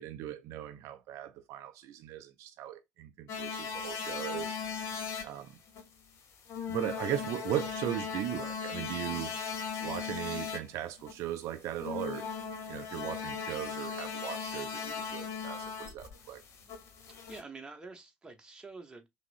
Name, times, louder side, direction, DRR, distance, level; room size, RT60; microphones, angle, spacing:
voice 1, 0.0-4.6 5.2-5.6 6.7-9.4 9.8-12.3 12.7-16.4, right 12 dB, 55° right, 0.4 m, -38 dB
sound 1, 3.3-5.4 5.7-5.8 6.5-10.6 11.0-11.2 11.8-17.4, left 6 dB, 50° left, 1.0 m, -38 dB
voice 2, 17.3-19.1, right 3 dB, 15° right, 0.9 m, -47 dB
5.8 x 2.1 x 2.5 m
figure-of-eight pair, 50°, 6 cm